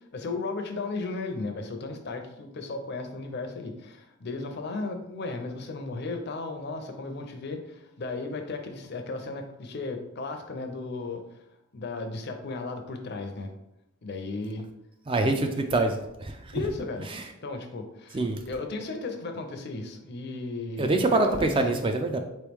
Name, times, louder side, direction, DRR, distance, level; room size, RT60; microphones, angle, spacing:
voice 1, 0.0-11.2 11.7-13.5 14.0-14.7 15.7-15.8 16.5-17.1 17.4-21.8, left 3 dB, 50° left, 5 dB, 0.5 m, -35 dB
voice 2, 15.1-16.0 16.3-16.5 17.1-17.3 18.1-18.4 20.8-22.2, right 2 dB, 25° right, 5 dB, 0.3 m, -25 dB
4.4 x 3.1 x 3.4 m, 0.87 s
head